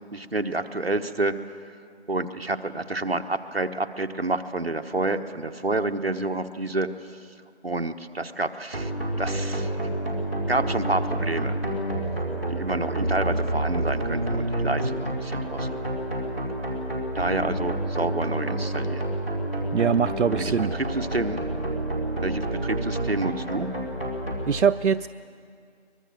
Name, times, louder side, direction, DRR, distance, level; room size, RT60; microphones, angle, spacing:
voice 1, 0.1-1.3 2.1-6.9 7.6-8.9 9.2-9.7 10.5-11.5 12.5-15.8 17.1-19.1 20.4-21.4 22.2-23.7, right 2 dB, 60° right, 6 dB, 1.2 m, -29 dB
sound 1, 8.7-24.3, right 1 dB, 10° right, 2.7 m, -28 dB
voice 2, 19.7-20.8 24.5-25.1, right 7 dB, 85° right, 9 dB, 0.6 m, -22 dB
23.0 x 21.0 x 7.6 m, 2.3 s
figure-of-eight pair, 180°, 34 cm